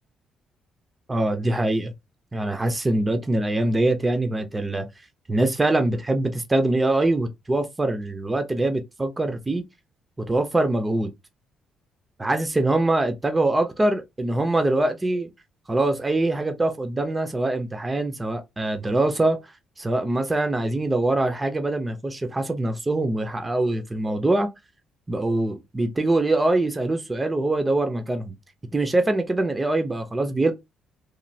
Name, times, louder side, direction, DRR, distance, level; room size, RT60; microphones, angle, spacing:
voice 1, 1.1-1.9 2.3-4.9 5.3-9.6 10.3-11.1 12.2-15.3 15.7-24.5 25.1-28.3 28.7-30.5, right 2 dB, 15° right, 0.4 m, -23 dB
3.0 x 2.4 x 2.6 m
cardioid pair, 155°, 0 cm